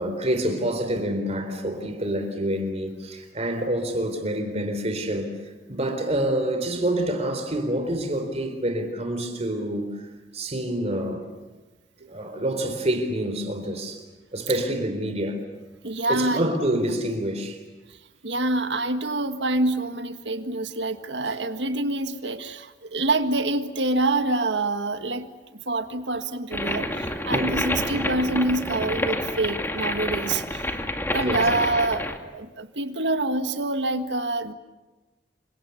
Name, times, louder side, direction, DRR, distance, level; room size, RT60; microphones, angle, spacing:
voice 1, 0.0-5.3 5.7-9.9 10.3-11.3 12.1-14.0 14.3-15.4 16.1-17.6 21.3-21.4 27.3-27.6 31.2-31.5, right 1 dB, 40° right, 3.8 m, -27 dB
voice 2, 15.8-16.6 17.9-25.3 25.6-34.5, right 2 dB, 85° right, 1.6 m, -26 dB
sound 1, 26.5-32.2, left 1 dB, 15° left, 2.3 m, -28 dB
29.5 x 26.0 x 7.1 m
head